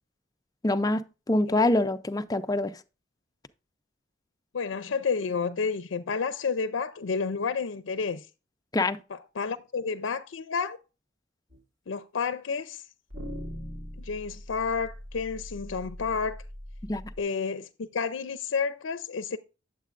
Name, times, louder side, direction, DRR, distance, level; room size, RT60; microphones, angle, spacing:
voice 1, 0.6-2.8 8.7-9.0 16.9-17.0, left 2 dB, 20° left, 0.5 m, -25 dB
voice 2, 4.5-8.3 9.1-10.8 11.9-12.9 14.0-16.4 17.2-19.4, left 5 dB, 85° left, 0.5 m, -30 dB
sound 1, 11.5-11.6 13.1-17.2, equal, 75° right, 2.5 m, -41 dB
9.3 x 7.4 x 2.5 m
head